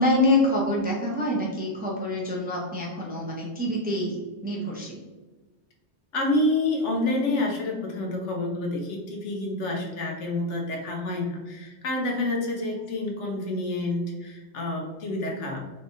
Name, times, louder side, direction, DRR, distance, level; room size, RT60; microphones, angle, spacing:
voice 1, 0.0-5.0, left 1 dB, 10° right, -3 dB, 0.4 m, -26 dB
voice 2, 6.1-15.6, left 2 dB, 80° left, 1 dB, 1.1 m, -28 dB
3.6 x 3.3 x 2.6 m, 1.2 s
omnidirectional pair, 1.2 m